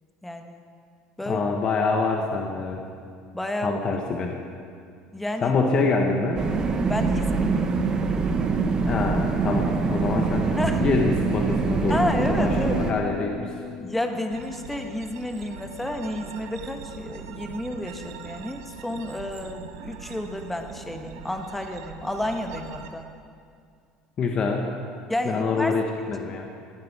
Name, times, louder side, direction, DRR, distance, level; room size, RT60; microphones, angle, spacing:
voice 1, 0.2-0.6 1.2-1.4 3.3-3.8 5.1-5.6 6.9-7.7 10.6-10.8 11.9-12.8 13.8-23.1 25.1-25.7, left 1 dB, 5° left, 5 dB, 1.2 m, -30 dB
voice 2, 1.3-2.8 3.6-4.4 5.4-6.4 8.8-13.5 24.2-24.8 25.2-26.5, left 4 dB, 40° left, 2 dB, 1.2 m, -26 dB
sound 1, 6.4-12.9, right 4 dB, 30° right, 1.2 m, -24 dB
Acoustic guitar, 11.9-17.1, left 9 dB, 80° left, 0.8 m, -38 dB
sound 2, 14.3-22.9, right 7 dB, 85° right, 0.9 m, -41 dB
15.0 x 11.5 x 4.9 m, 2.2 s
supercardioid pair, 120°, 2 cm